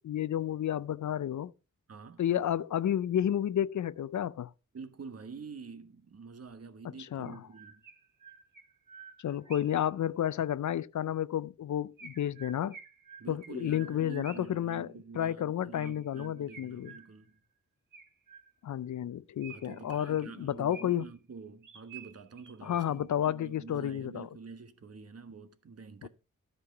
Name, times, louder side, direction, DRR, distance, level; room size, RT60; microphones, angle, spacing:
voice 1, 0.0-1.5 2.2-4.5 7.0-7.4 9.2-12.8 13.3-14.9 15.1-16.9 18.6-21.0 22.6-24.3 26.0-26.1, left 10 dB, 65° left, 0.5 m, -31 dB
voice 2, 1.9-2.2 4.7-7.8 13.2-17.4 19.5-26.1, right 5 dB, 50° right, 1.2 m, -47 dB
Chirp tweet, 7.3-9.9 12.0-14.6 15.8-17.4 17.9-18.8 19.4-21.2 21.6-23.1, right 5 dB, 75° right, 1.9 m, -52 dB
13.0 x 5.6 x 5.6 m
wide cardioid pair, 145°, 32 cm